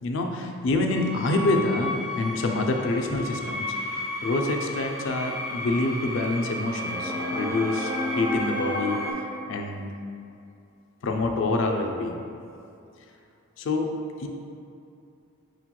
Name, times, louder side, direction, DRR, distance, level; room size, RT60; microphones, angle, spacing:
voice 1, 0.0-3.6 3.9-9.0 9.5-9.9 11.0-12.2 13.6-13.9 14.2-14.3, left 2 dB, 55° left, 3 dB, 0.3 m, -26 dB
sound 1, 0.9-9.1, left 1 dB, 10° right, 0.7 m, -32 dB
6.2 x 2.9 x 2.2 m, 2.6 s
head